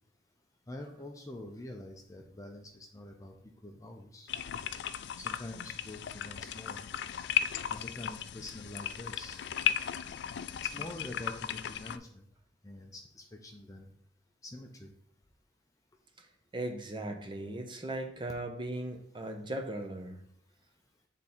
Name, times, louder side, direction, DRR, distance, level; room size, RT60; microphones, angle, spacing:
voice 1, 0.7-4.3 5.2-6.8 7.7-9.4 10.6-12.3 12.6-13.9 14.4-14.9, left 1 dB, 15° left, 2 dB, 0.6 m, -46 dB
sound 1, 4.3-12.0, left 9 dB, 65° left, 0.3 m, -36 dB
voice 2, 16.5-20.2, right 1 dB, 25° right, 4 dB, 0.8 m, -38 dB
8.2 x 3.6 x 4.3 m, 0.68 s
head